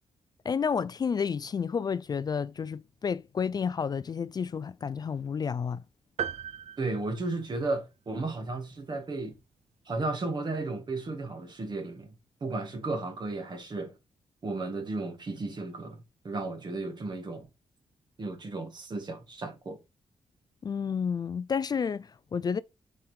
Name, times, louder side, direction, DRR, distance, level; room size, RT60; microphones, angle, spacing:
voice 1, 0.4-5.8 20.6-22.6, left 6 dB, 35° left, 0.3 m, -30 dB
sound 1, 6.2-8.0, right 9 dB, 70° right, 0.6 m, -38 dB
voice 2, 6.8-9.4 9.9-12.2 12.4-13.9 14.4-17.5 18.2-19.8, right 3 dB, 40° right, 1.8 m, -34 dB
7.2 x 4.6 x 3.4 m
wide cardioid pair, 135°, 11 cm